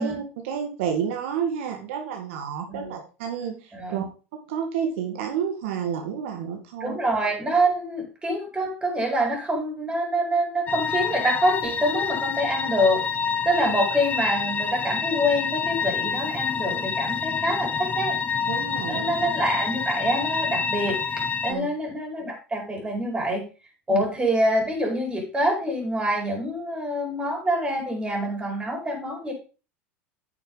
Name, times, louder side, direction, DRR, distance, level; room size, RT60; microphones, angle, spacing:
voice 1, 0.0-4.0 4.5-7.0 18.5-19.1 21.5-21.7 23.9-24.0, right 7 dB, 75° right, 3 dB, 1.8 m, -30 dB
voice 2, 2.7-3.0 3.7-4.0 6.8-13.0 13.4-18.1 18.9-23.4 23.9-29.3, equal, 15° right, 0 dB, 4.7 m, -26 dB
sound 1, 10.7-21.5, left 6 dB, 25° left, 0.7 m, -27 dB
9.4 x 6.6 x 4.0 m, 0.33 s
supercardioid pair, 105°, 7 cm